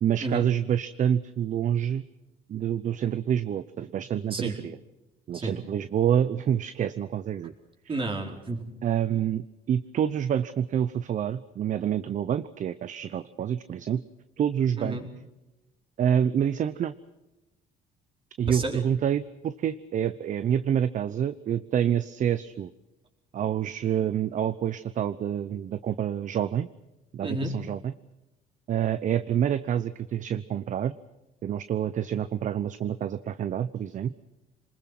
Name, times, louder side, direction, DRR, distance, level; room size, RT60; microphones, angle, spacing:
voice 1, 0.0-2.0 2.5-4.8 5.3-7.5 8.8-14.0 14.4-15.0 16.0-16.9 18.4-22.7 23.3-26.7 27.1-27.9 28.7-30.9 31.4-34.1, right 9 dB, 50° right, 13 dB, 0.8 m, -27 dB
voice 2, 7.9-8.7 14.8-15.1 18.5-18.8 27.2-27.5, right 2 dB, 30° right, 2 dB, 4.7 m, -31 dB
28.0 x 21.0 x 6.1 m, 1.0 s
cardioid pair, 110°, 17 cm